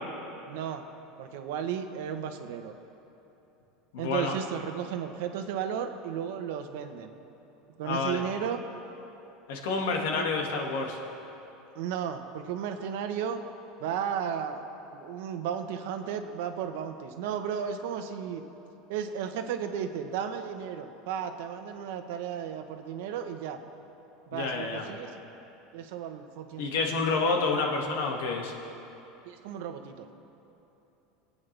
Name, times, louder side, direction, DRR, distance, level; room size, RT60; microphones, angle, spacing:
voice 1, 0.5-0.8 1.2-2.8 4.0-7.1 7.8-8.6 10.1-10.3 11.7-13.4 13.8-14.6 14.9-18.4 18.9-23.6 24.3-25.1 25.7-26.9 29.2-30.1, right 8 dB, 75° right, 6 dB, 1.1 m, -34 dB
voice 2, 3.9-4.4 7.8-8.2 9.5-11.0 24.3-24.9 26.6-28.5, left 4 dB, 85° left, 1 dB, 2.1 m, -29 dB
26.0 x 8.8 x 3.4 m, 3.0 s
supercardioid pair, 150°, 0 cm